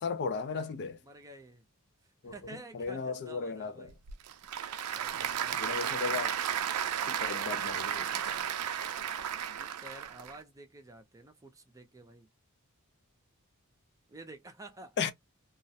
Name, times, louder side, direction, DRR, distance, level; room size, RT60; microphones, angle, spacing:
voice 1, 0.0-1.0 2.2-2.3 2.7-3.9 5.6-6.4 7.1-8.5 15.0-15.1, left 5 dB, 50° left, 0.4 m, -35 dB
voice 2, 1.0-1.6 2.2-4.0 4.9-6.1 9.5-12.3 14.1-15.1, right 2 dB, 15° right, 0.5 m, -50 dB
Applause / Crowd, 3.9-10.4, right 9 dB, 85° right, 0.4 m, -34 dB
2.3 x 2.0 x 2.6 m
head